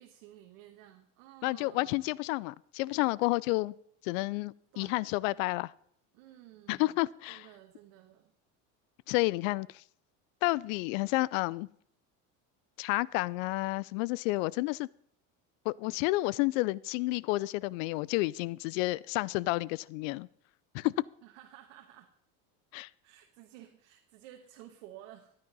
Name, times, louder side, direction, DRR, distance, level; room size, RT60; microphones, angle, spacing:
voice 1, 0.0-2.1 4.7-5.1 6.1-7.0 7.3-8.3 21.2-22.1 23.0-25.3, right 12 dB, 80° right, 1.5 m, -53 dB
voice 2, 1.4-3.7 4.0-5.7 6.7-7.5 9.1-9.8 10.4-11.7 12.8-14.9 15.7-20.3 20.7-20.9 22.7-22.9, left 21 dB, 85° left, 0.6 m, -30 dB
13.0 x 9.6 x 5.4 m
supercardioid pair, 130°, 38 cm